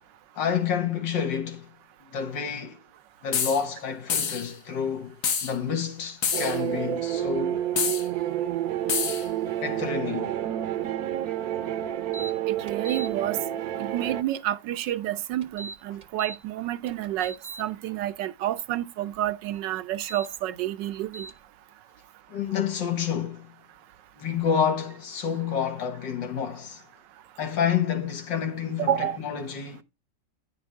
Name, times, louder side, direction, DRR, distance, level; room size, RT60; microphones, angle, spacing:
voice 1, 0.4-1.7 2.0-2.8 3.2-7.6 9.6-10.4 22.3-23.6 24.2-26.8 27.4-29.8, left 7 dB, 90° left, 2.2 m, -29 dB
sound 1, 3.3-3.6 4.1-4.5 5.2-5.5 6.2-6.6 7.8-8.1 8.9-9.3, left 6 dB, 65° left, 1.6 m, -27 dB
sound 2, 6.3-14.2, right 12 dB, 65° right, 1.0 m, -29 dB
sound 3, 12.1-12.3 12.7-13.1 15.4-16.4 16.9-17.6 19.9-20.3 21.1-21.3, right 3 dB, 40° right, 0.7 m, -39 dB
voice 2, 12.5-13.4 13.8-21.3 28.9-29.2, right 12 dB, 85° right, 1.3 m, -29 dB
9.8 x 6.0 x 3.5 m
omnidirectional pair, 1.9 m